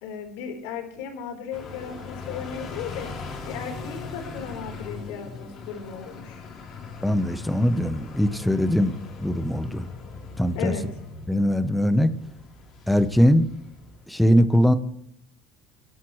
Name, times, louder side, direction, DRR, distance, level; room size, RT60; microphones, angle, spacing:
voice 1, 0.0-3.1 3.5-6.4 10.6-10.8, left 7 dB, 80° left, 6 dB, 3.9 m, -35 dB
sound 1, 1.5-14.1, left 4 dB, 40° left, 3.6 m, -40 dB
voice 2, 7.0-8.9 9.2-9.9 10.4-10.7 11.3-12.1 12.9-13.5 14.1-14.7, equal, 5° left, 12 dB, 0.9 m, -21 dB
23.5 x 11.0 x 3.2 m, 0.77 s
cardioid pair, 140°, 0 cm